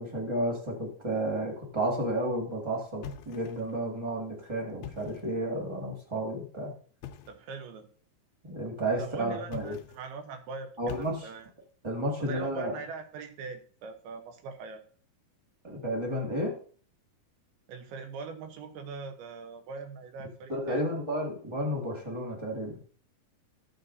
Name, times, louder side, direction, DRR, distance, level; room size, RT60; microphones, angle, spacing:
voice 1, 0.0-6.7 8.4-9.8 10.8-11.3 11.8-12.7 15.6-16.5 20.5-22.8, right 1 dB, 45° right, -2 dB, 0.3 m, -32 dB
sound 1, 3.0-3.8 4.7-5.4 7.0-7.5 9.4-10.1 10.9-11.6, left 9 dB, 80° left, 2.3 m, -44 dB
voice 2, 7.3-7.9 9.0-10.7 11.0-11.5 12.2-14.8 17.7-21.0, right 4 dB, 80° right, 7 dB, 2.9 m, -41 dB
13.5 x 8.1 x 2.7 m, 0.43 s
omnidirectional pair, 4.5 m